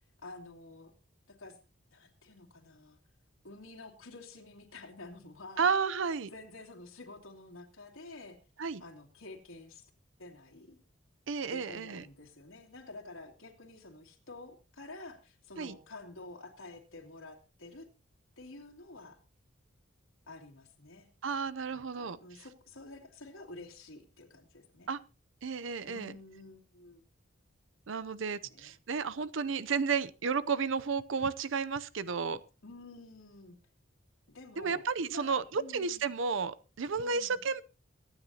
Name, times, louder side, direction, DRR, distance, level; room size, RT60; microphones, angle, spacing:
voice 1, 0.2-0.9 1.3-1.6 1.9-3.0 3.4-5.6 6.3-8.4 8.8-9.9 10.2-10.8 11.5-17.9 18.4-19.2 20.3-21.1 21.7-24.9 25.8-27.0 28.4-28.7 32.6-33.6 34.3-36.1 37.0-37.4, left 2 dB, 90° left, -1 dB, 2.7 m, -50 dB
voice 2, 5.6-6.3 8.6-8.8 11.3-12.0 15.6-15.8 21.2-22.2 24.9-25.0 25.4-26.1 27.9-32.4 34.6-37.6, right 5 dB, 70° right, 15 dB, 0.6 m, -32 dB
24.0 x 9.7 x 2.8 m, 0.31 s
head